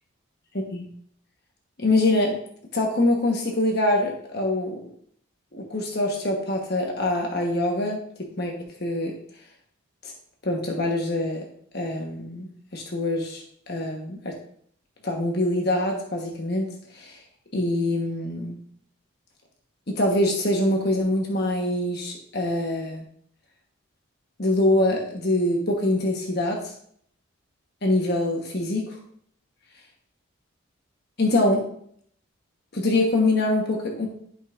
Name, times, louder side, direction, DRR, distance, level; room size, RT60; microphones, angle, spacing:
voice 1, 1.8-2.3 2.7-4.7 5.5-8.0 8.4-8.5 8.8-9.1 10.0-10.1 10.4-11.4 11.7-14.3 15.0-16.7 16.9-17.2 17.5-18.6 19.9-23.0 24.4-26.6 27.8-28.8 31.2-31.6 32.7-34.1, left 1 dB, 50° left, 0 dB, 1.2 m, -24 dB
11.5 x 5.4 x 2.6 m, 0.63 s
head